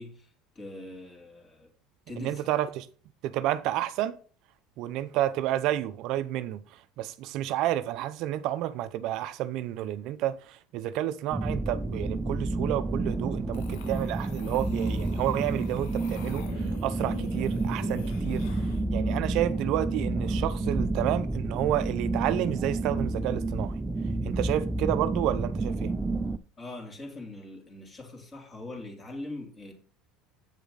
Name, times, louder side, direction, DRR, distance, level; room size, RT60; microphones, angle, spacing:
voice 1, 0.0-1.7 2.1-2.5 26.6-29.7, left 2 dB, 25° left, 2.9 m, -42 dB
voice 2, 2.2-2.9 3.2-4.2 4.8-6.6 7.0-18.5 18.9-23.8 24.2-25.9, right 13 dB, 60° right, 0.5 m, -30 dB
sound 1, 11.3-26.4, right 2 dB, 10° right, 0.4 m, -30 dB
sound 2, 13.5-18.8, left 9 dB, 85° left, 1.4 m, -46 dB
8.3 x 6.9 x 4.0 m
supercardioid pair, 125°, 0 cm